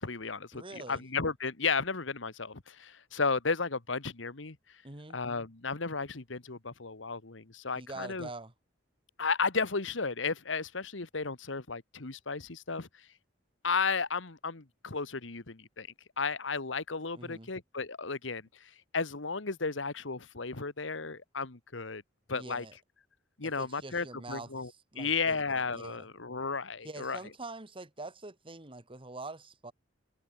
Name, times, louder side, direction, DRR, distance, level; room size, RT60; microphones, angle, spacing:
voice 1, 0.0-4.6 5.1-8.3 9.2-13.1 13.6-15.9 16.2-22.0 22.3-22.6 23.4-24.7 25.0-27.2, left 4 dB, 75° left, 1.6 m, -34 dB
voice 2, 0.5-1.0 4.8-5.2 7.7-8.5 17.2-17.5 22.3-22.7 23.4-26.0 26.8-29.7, right 2 dB, 30° right, 2.4 m, -45 dB
head